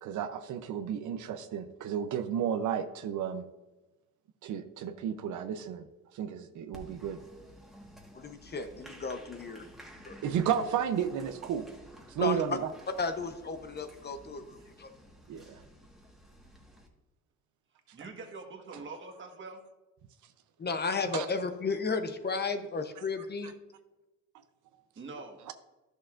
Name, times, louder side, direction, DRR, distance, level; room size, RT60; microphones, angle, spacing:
voice 1, 0.0-3.4 4.4-5.9 6.1-7.2 10.2-11.7 12.1-12.7 15.3-15.6 18.7-18.8 21.1-21.3 25.5-25.6, right 8 dB, 75° right, 9 dB, 0.6 m, -32 dB
Applause, 6.7-16.9, equal, ahead, 1.4 m, -52 dB
voice 2, 8.1-9.7 10.0-10.1 12.2-12.6 13.0-14.9 20.6-23.5, left 4 dB, 35° left, 8 dB, 0.8 m, -33 dB
voice 3, 17.9-19.6 24.9-25.5, right 3 dB, 40° right, 3 dB, 1.4 m, -44 dB
11.5 x 6.6 x 2.5 m, 1.1 s
cardioid pair, 90°, 30 cm